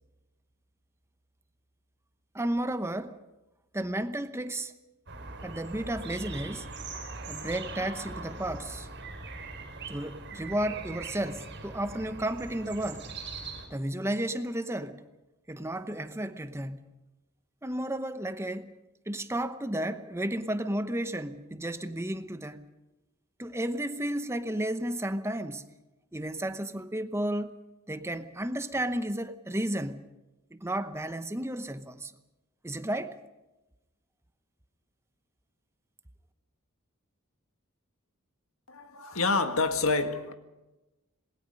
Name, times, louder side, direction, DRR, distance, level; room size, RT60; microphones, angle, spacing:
voice 1, 2.3-3.2 3.7-4.7 5.4-6.7 7.2-8.9 9.9-13.1 13.7-15.0 15.5-16.8 17.6-18.7 19.1-22.7 23.4-25.7 26.1-27.6 27.9-30.0 30.5-32.1 32.6-33.2, right 1 dB, 15° right, 0.9 m, -33 dB
sound 1, 5.1-13.7, right 3 dB, 55° right, 5.0 m, -41 dB
voice 2, 38.7-40.3, left 3 dB, 75° left, 1.7 m, -27 dB
27.0 x 20.5 x 5.4 m
head